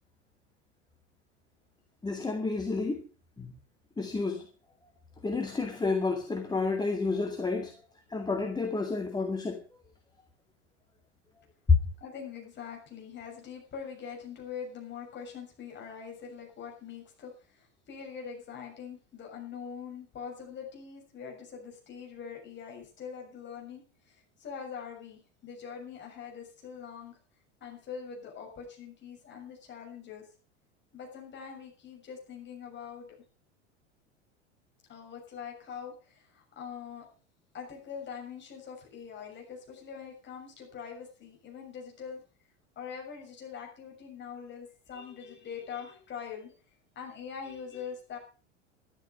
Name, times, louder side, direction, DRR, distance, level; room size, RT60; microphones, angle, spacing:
voice 1, 2.0-3.1 3.4-3.5 4.0-4.5 5.2-7.8 8.1-9.6 11.7-11.8, left 4 dB, 10° left, 2.0 m, -29 dB
voice 2, 12.0-27.2 27.6-30.3 30.9-33.1 34.9-37.1 37.5-42.2 42.8-46.5 47.0-48.2, left 7 dB, 30° left, 6.8 m, -43 dB
12.5 x 12.0 x 5.5 m
figure-of-eight pair, 80°, 37 cm